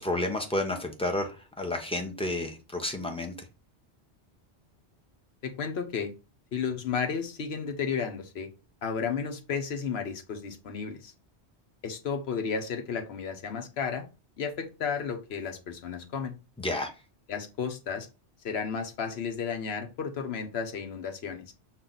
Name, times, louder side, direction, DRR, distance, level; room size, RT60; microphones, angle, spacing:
voice 1, 0.0-3.4 16.6-16.9, left 1 dB, 5° left, 3 dB, 0.5 m, -31 dB
voice 2, 5.4-6.1 6.5-8.5 8.8-11.1 11.8-14.0 14.4-16.3 17.3-18.1 18.4-21.5, left 6 dB, 70° left, 5 dB, 1.0 m, -33 dB
5.6 x 2.4 x 3.8 m, 0.31 s
omnidirectional pair, 1.1 m